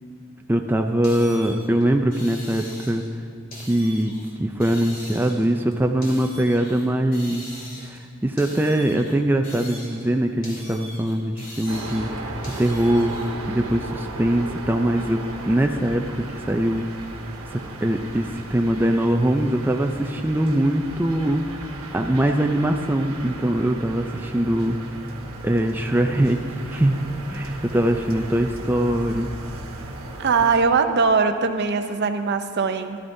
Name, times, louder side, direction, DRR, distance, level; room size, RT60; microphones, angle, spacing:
voice 1, 0.5-3.0 3.7-4.1 4.4-7.4 7.8-12.1 12.4-13.2 13.5-16.9 17.5-21.7 21.9-24.8 25.4-26.4 26.7-27.0 27.3-29.3, right 1 dB, 10° right, 3 dB, 0.4 m, -22 dB
sound 1, 1.0-3.1 3.5-4.3 4.6-6.9 7.1-8.1 8.4-10.1 10.4-13.3, left 1 dB, 45° left, 2.5 m, -42 dB
sound 2, 11.7-30.6, right 2 dB, 85° right, 1.2 m, -36 dB
voice 2, 30.2-33.0, right 4 dB, 55° right, 8 dB, 0.6 m, -21 dB
14.5 x 12.5 x 2.6 m, 2.2 s
head